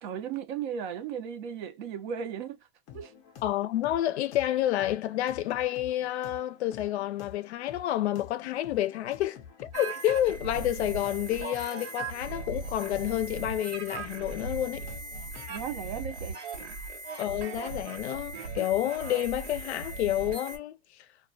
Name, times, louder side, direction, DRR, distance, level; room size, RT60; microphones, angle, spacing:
voice 1, 0.0-2.6 2.9-3.1 15.5-16.7, right 8 dB, 45° right, 0.5 m, -36 dB
sound 1, 2.9-15.7, left 8 dB, 25° left, 0.4 m, -50 dB
voice 2, 3.4-14.9 17.2-20.8, left 13 dB, 75° left, 0.5 m, -29 dB
sound 2, 9.7-20.6, right 3 dB, 80° right, 1.2 m, -38 dB
2.2 x 2.1 x 2.6 m
hypercardioid pair, 145°, 34 cm